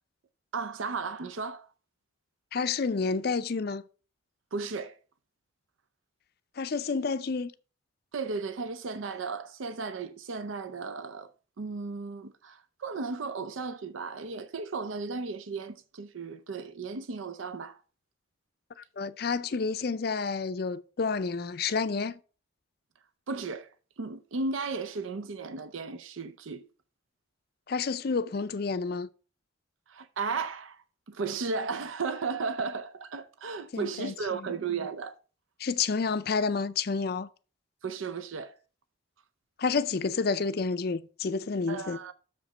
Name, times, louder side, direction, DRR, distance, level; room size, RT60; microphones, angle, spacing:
voice 1, 0.5-1.7 4.5-5.0 8.1-11.3 11.6-17.8 23.3-23.7 24.0-26.7 29.9-35.2 37.8-38.6 41.7-42.1, right 4 dB, 80° right, 0.5 m, -35 dB
voice 2, 2.5-3.8 6.6-7.5 19.0-22.2 27.7-29.1 33.7-34.1 35.6-37.3 39.6-42.0, left 4 dB, 50° left, 0.4 m, -29 dB
6.7 x 5.0 x 5.4 m
head